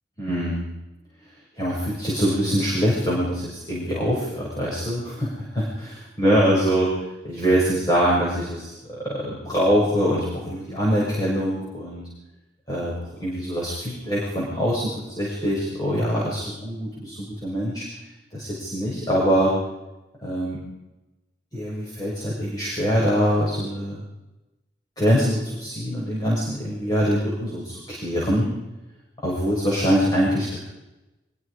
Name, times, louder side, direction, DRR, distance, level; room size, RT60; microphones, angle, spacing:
voice 1, 0.2-0.7 1.6-6.9 7.2-12.1 12.7-17.8 18.3-19.5 20.2-20.6 21.5-24.0 25.0-28.5 29.2-30.6, equal, 20° left, -6 dB, 6.6 m, -24 dB
24.0 x 22.5 x 5.0 m, 1.0 s
head